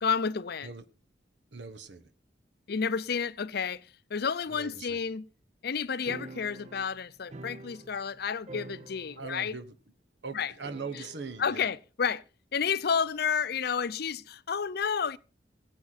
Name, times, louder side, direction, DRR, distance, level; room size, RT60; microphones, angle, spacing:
voice 1, 0.0-0.7 2.7-3.8 4.1-5.3 5.6-9.6 10.3-10.5 10.9-11.0 11.4-12.2 12.5-15.2, left 6 dB, 60° left, 0.6 m, -30 dB
voice 2, 1.5-2.1 4.5-5.0 9.2-9.7 10.2-11.7, right 4 dB, 75° right, 1.3 m, -41 dB
sound 1, 6.1-8.2 8.4-9.5 9.7-9.8 10.6-11.4, right 2 dB, 40° right, 0.8 m, -46 dB
19.0 x 8.2 x 4.1 m
head